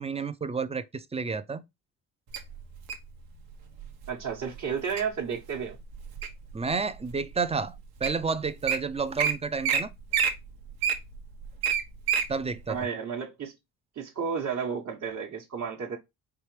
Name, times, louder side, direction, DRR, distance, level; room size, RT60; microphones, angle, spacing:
voice 1, 0.0-1.6 6.5-7.8 8.0-9.9 12.3-12.8, right 4 dB, 15° right, 0.5 m, -30 dB
Wild animals, 2.3-3.1 3.8-4.1 4.6-5.0 5.5-6.5 7.1-7.2 7.8-7.9 8.0-8.2 8.5-8.8 9.2-9.3 9.6-9.8 10.1-12.3 12.7-12.8, right 7 dB, 80° right, 1.1 m, -27 dB
voice 2, 4.1-5.8 12.7-13.5 14.0-16.0, right 6 dB, 45° right, 1.2 m, -32 dB
4.7 x 3.3 x 3.1 m
cardioid pair, 90°, 37 cm